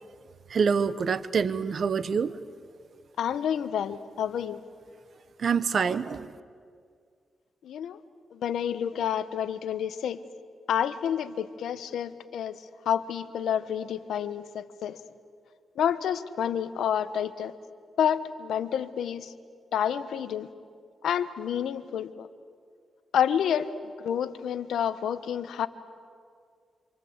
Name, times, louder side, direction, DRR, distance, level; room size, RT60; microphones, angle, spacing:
voice 1, 0.5-2.3 5.4-6.3, right 6 dB, 60° right, 15 dB, 1.0 m, -26 dB
voice 2, 3.2-4.6 7.6-8.0 8.3-10.2 10.7-12.6 12.9-15.0 15.8-17.5 18.0-19.3 19.7-20.5 21.0-22.3 23.1-23.7 24.0-25.7, left 9 dB, 85° left, 13 dB, 1.1 m, -29 dB
27.5 x 26.5 x 8.1 m, 2.2 s
cardioid pair, 75°, 0 cm